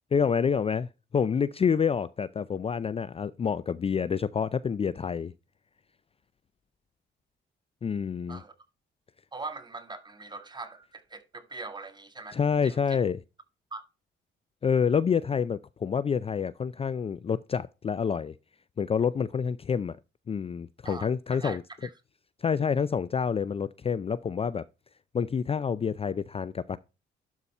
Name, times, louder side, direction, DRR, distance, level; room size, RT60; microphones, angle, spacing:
voice 1, 0.1-0.9 1.1-5.3 7.8-8.4 12.3-13.2 14.6-18.3 18.8-20.0 20.3-21.6 22.4-24.6 25.1-26.8, left 6 dB, 30° left, 0.4 m, -28 dB
voice 2, 9.3-12.4 12.6-12.8 13.7-13.8 20.8-21.9, right 3 dB, 20° right, 1.8 m, -41 dB
12.0 x 4.1 x 4.3 m
cardioid pair, 90°, 20 cm